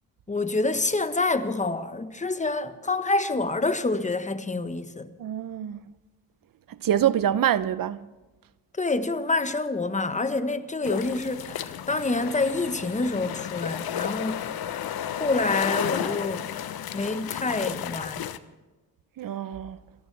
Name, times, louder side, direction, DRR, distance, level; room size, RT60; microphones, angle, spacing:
voice 1, 0.3-5.1 8.8-14.4 15.2-16.5 16.9-18.2, left 3 dB, 20° left, 1.1 m, -27 dB
voice 2, 5.2-5.8 6.7-8.1 19.2-19.8, right 10 dB, 60° right, 0.7 m, -25 dB
sound 1, 10.8-18.4, left 10 dB, 65° left, 0.9 m, -32 dB
29.0 x 13.0 x 3.4 m
cardioid pair, 85°, 39 cm